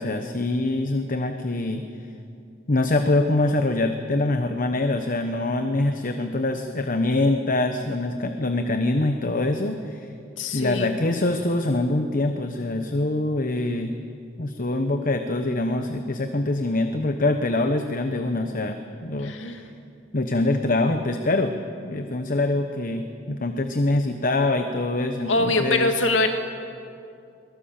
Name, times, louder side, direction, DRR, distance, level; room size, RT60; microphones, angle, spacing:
voice 1, 0.0-1.9 2.7-10.1 10.5-13.9 14.4-19.6 20.1-21.5 21.8-25.9, left 2 dB, 45° left, 6 dB, 1.1 m, -24 dB
voice 2, 10.4-11.0 19.2-19.7 25.2-26.3, left 2 dB, 80° left, 5 dB, 2.2 m, -23 dB
23.0 x 21.0 x 7.4 m, 2.5 s
head